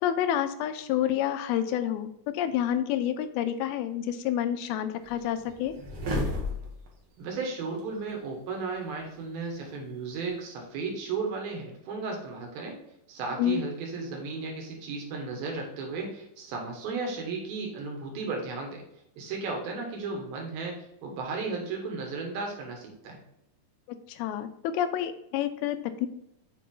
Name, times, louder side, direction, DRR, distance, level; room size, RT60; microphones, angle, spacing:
voice 1, 0.0-5.7 13.4-13.6 24.1-26.1, left 10 dB, 90° left, 9 dB, 2.5 m, -29 dB
sound 1, 5.0-6.9 7.8-7.9, left 1 dB, 55° right, 1.5 m, -32 dB
voice 2, 7.2-12.8 13.1-18.8 19.2-23.2, right 4 dB, 80° right, 1 dB, 3.2 m, -34 dB
7.1 x 4.6 x 3.8 m, 0.80 s
omnidirectional pair, 4.3 m